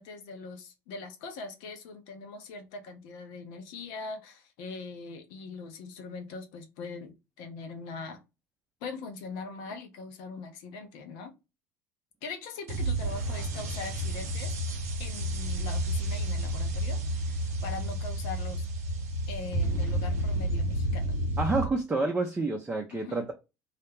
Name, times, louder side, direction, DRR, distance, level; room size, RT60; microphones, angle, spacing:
voice 1, 0.0-8.2 8.8-11.4 12.2-14.5 15.0-18.6 19.3-21.2 22.9-23.2, left 4 dB, 65° left, 0.7 m, -41 dB
sound 1, 12.7-21.6, right 1 dB, 80° right, 0.6 m, -30 dB
voice 2, 21.4-23.3, right 3 dB, 15° right, 0.5 m, -28 dB
2.4 x 2.1 x 3.1 m
hypercardioid pair, 70°, 8 cm